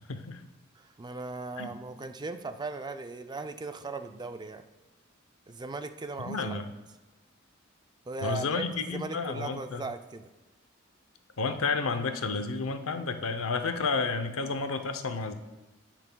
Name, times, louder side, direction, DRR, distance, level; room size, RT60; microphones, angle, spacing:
voice 1, 0.1-0.4 1.6-1.7 6.2-6.7 8.2-9.8 11.4-15.3, left 4 dB, 85° left, 8 dB, 0.6 m, -31 dB
voice 2, 0.8-4.6 5.5-6.6 8.1-10.3, right 3 dB, 20° right, 9 dB, 0.4 m, -38 dB
16.0 x 5.9 x 2.2 m, 1.1 s
head